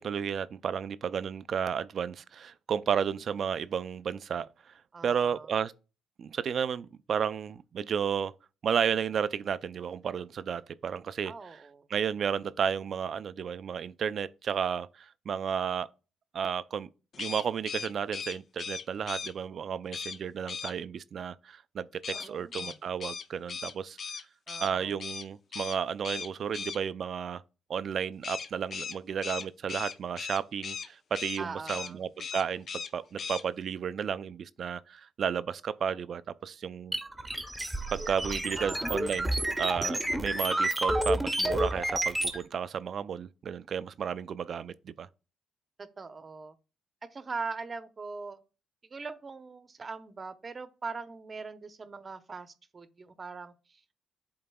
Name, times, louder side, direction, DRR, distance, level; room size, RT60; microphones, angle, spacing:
voice 1, 0.0-4.7 5.0-5.7 6.2-8.3 8.6-11.3 11.9-15.9 16.3-16.9 17.2-24.2 24.6-27.4 27.7-37.0 37.9-45.1, right 7 dB, 55° right, 0.4 m, -33 dB
voice 2, 4.9-5.5 11.2-11.9 22.1-22.8 24.5-24.9 31.4-32.0 38.6-39.2 45.8-46.5 47.0-48.4 48.9-53.8, right 4 dB, 35° right, 0.8 m, -41 dB
sound 1, 17.1-19.3 19.9-20.2 20.5-20.7 22.0-24.7 25.0-25.3 25.5-25.8 26.0-26.8 28.2-30.9 31.1-31.4 31.7-31.9 32.2-32.9 33.2-33.4, left 6 dB, 50° left, 0.5 m, -38 dB
sound 2, 36.9-42.4, right 1 dB, 10° right, 1.0 m, -30 dB
11.0 x 3.9 x 2.3 m
cardioid pair, 90°, 0 cm